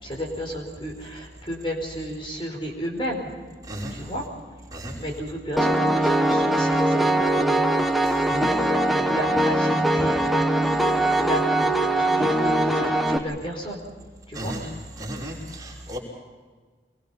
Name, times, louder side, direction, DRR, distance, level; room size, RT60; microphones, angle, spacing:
voice 1, 0.0-3.3 4.0-4.2 5.0-8.0 8.3-13.8 14.3-14.5, equal, 30° left, 0 dB, 4.8 m, -33 dB
voice 2, 3.7-4.0 4.7-5.0 8.1-8.2 14.3-14.7 15.0-16.0, right 1 dB, 20° right, -4 dB, 5.9 m, -34 dB
Piano, 5.6-13.2, right 1 dB, ahead, 1.2 m, -21 dB
26.0 x 23.0 x 5.7 m, 1.4 s
head